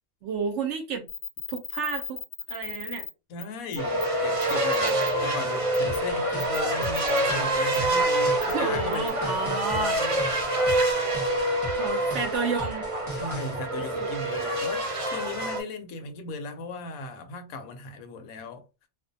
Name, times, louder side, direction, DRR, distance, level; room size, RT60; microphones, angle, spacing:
voice 1, 0.2-1.1 1.5-2.2 2.5-3.1 8.4-10.0 11.8-12.9 14.0-14.1, right 4 dB, 65° right, 0.8 m, -31 dB
sound 1, 1.1-3.1 3.4-3.5 3.7-4.1 4.4-5.1 5.7-6.0 6.4-7.2 7.7-7.8 8.4-8.5 8.9-9.1, left 6 dB, 65° left, 0.7 m, -36 dB
voice 2, 3.3-10.2 13.1-18.6, left 3 dB, 85° left, 1.0 m, -37 dB
sound 2, 3.8-15.6, right 1 dB, 50° right, 0.4 m, -26 dB
sound 3, 5.8-13.5, equal, 15° left, 0.7 m, -40 dB
2.4 x 2.1 x 2.6 m
omnidirectional pair, 1.5 m